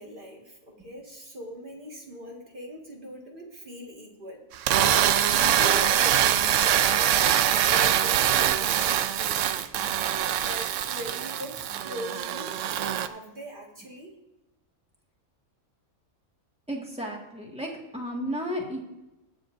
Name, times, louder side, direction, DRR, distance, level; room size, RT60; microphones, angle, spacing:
voice 1, 0.0-4.4 5.3-7.2 7.5-9.6 10.4-12.6 12.9-14.2, equal, 35° right, -1 dB, 2.0 m, -40 dB
sound 1, 4.5-13.1, right 10 dB, 70° right, 0.8 m, -23 dB
voice 2, 16.7-18.8, equal, 5° right, -1 dB, 1.8 m, -33 dB
22.0 x 7.5 x 2.6 m, 0.97 s
omnidirectional pair, 1.5 m